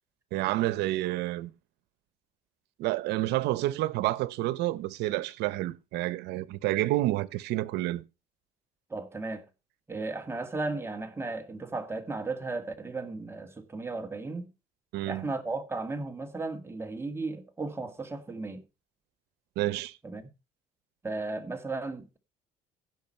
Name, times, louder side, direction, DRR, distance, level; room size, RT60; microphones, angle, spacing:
voice 1, 0.3-1.5 2.8-8.0 14.9-15.3 19.6-20.0, right 16 dB, 85° right, 0.9 m, -29 dB
voice 2, 8.9-9.4 9.9-14.5 15.1-18.6 20.0-20.2 21.0-22.2, right 3 dB, 15° right, 2.0 m, -35 dB
15.5 x 6.1 x 4.4 m
cardioid pair, 110°, 17 cm